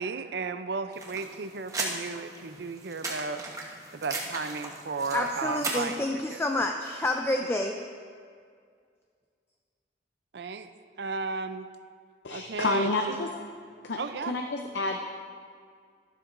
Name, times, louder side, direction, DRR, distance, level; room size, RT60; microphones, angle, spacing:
voice 1, 0.0-3.4 3.9-6.0 6.3-6.4 10.3-10.7 11.0-11.7 12.3-12.9 14.0-14.3, right 4 dB, 65° right, 10 dB, 0.5 m, -34 dB
sound 1, 0.9-6.0, right 2 dB, 20° right, 1.1 m, -37 dB
voice 2, 5.1-7.8, left 2 dB, 15° left, 3 dB, 0.3 m, -28 dB
voice 3, 12.2-13.4 13.8-15.0, left 2 dB, 75° left, 4 dB, 0.6 m, -29 dB
13.0 x 12.0 x 2.6 m, 2.1 s
head